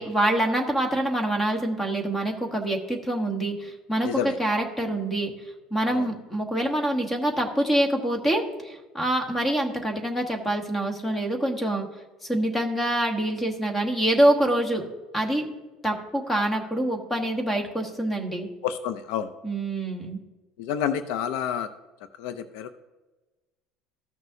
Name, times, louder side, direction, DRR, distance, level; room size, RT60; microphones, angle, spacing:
voice 1, 0.0-5.3 5.7-11.9 12.3-14.8 15.1-15.4 15.8-18.5 19.4-20.2, right 1 dB, 10° left, 4 dB, 1.2 m, -25 dB
voice 2, 4.0-4.4 5.9-6.1 18.6-19.3 20.6-21.7 22.2-22.7, left 8 dB, 75° left, 11 dB, 0.5 m, -29 dB
14.0 x 6.2 x 2.7 m, 1.2 s
cardioid pair, 155°, 0 cm